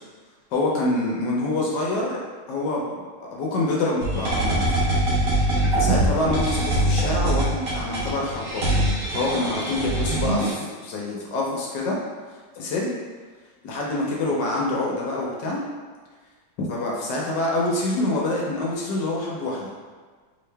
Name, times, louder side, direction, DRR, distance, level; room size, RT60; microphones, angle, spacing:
voice 1, 0.5-2.2 2.5-4.8 5.7-8.7 9.1-12.0 12.5-12.9 13.6-15.6 16.6-19.7, left 2 dB, 70° left, -3 dB, 1.1 m, -26 dB
sound 1, 4.0-10.5, right 1 dB, 55° right, 1.2 m, -23 dB
3.3 x 2.9 x 3.2 m, 1.5 s
omnidirectional pair, 2.2 m